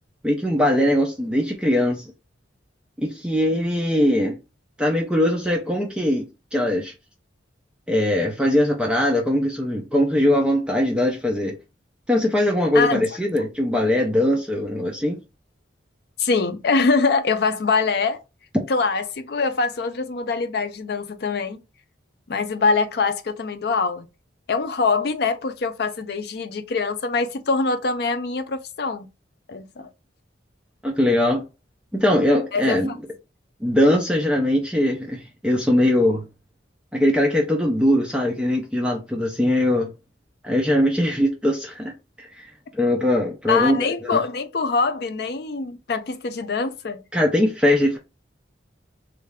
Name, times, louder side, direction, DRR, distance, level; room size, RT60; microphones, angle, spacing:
voice 1, 0.2-2.0 3.0-4.4 4.8-6.3 6.5-6.9 7.9-11.5 12.1-15.2 18.5-18.6 30.8-31.4 31.9-32.9 33.6-36.3 36.9-39.9 40.4-41.9 42.2-42.5 42.7-44.2 47.1-48.0, left 1 dB, 5° right, 0.5 m, -21 dB
voice 2, 16.2-18.2 18.7-21.6 22.3-24.1 24.5-29.1 29.5-29.9 32.5-32.8 43.5-47.0, left 4 dB, 55° left, 0.4 m, -23 dB
3.2 x 2.4 x 3.5 m
head